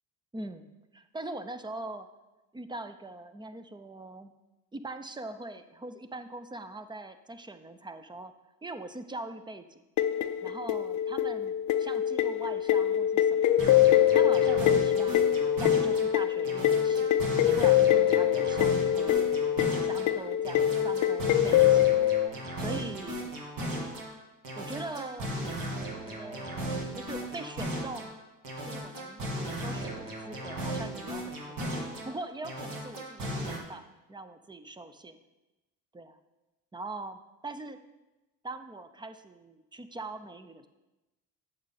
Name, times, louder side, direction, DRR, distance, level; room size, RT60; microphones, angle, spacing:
voice 1, 0.3-2.1 2.5-4.3 4.7-8.3 8.6-9.8 10.4-13.5 14.1-17.2 17.6-19.3 19.8-21.8 22.6-23.3 24.6-25.3 26.0-28.2 28.6-31.6 32.0-35.2 35.9-36.2 36.7-37.8 38.4-40.7, right 2 dB, 10° right, 11 dB, 0.5 m, -42 dB
sound 1, 10.0-22.3, left 11 dB, 45° left, 0.4 m, -24 dB
sound 2, 13.6-16.1 16.4-20.1 20.4-24.1 24.4-28.1 28.4-32.1 32.4-33.6, right 1 dB, 50° right, 2.2 m, -36 dB
8.6 x 6.7 x 4.1 m, 1.0 s
supercardioid pair, 95°, 42 cm